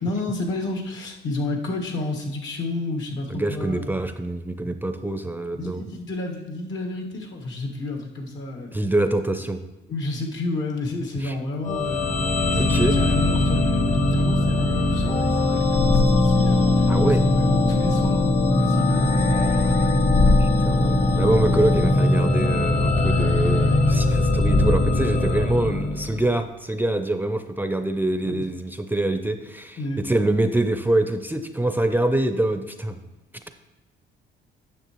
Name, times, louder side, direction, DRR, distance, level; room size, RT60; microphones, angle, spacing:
voice 1, 0.0-4.0 5.6-8.8 9.9-12.6 12.9-20.1 28.2-28.5 29.8-30.0, left 2 dB, 70° left, 1 dB, 1.6 m, -31 dB
voice 2, 3.3-5.9 8.7-9.6 11.2-11.4 12.5-12.9 16.9-17.2 20.4-33.0, right 2 dB, 10° right, 8 dB, 0.5 m, -25 dB
sound 1, 11.6-26.4, left 2 dB, 35° left, 0.9 m, -20 dB
9.4 x 6.7 x 3.0 m, 1.1 s
cardioid pair, 90°, 20 cm